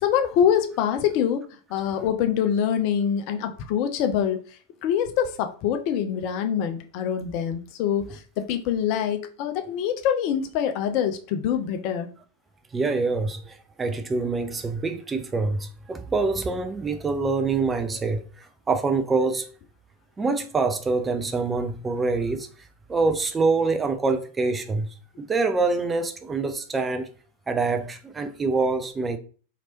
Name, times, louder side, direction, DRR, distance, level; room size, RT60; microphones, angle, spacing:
voice 1, 0.0-1.4 1.7-4.4 4.8-12.1, left 9 dB, 45° left, 0.5 m, -25 dB
voice 2, 12.7-19.5 20.2-22.5 22.9-27.1 27.5-29.2, right 3 dB, 15° right, 0.4 m, -25 dB
3.0 x 2.8 x 2.8 m
figure-of-eight pair, 90°, 0 cm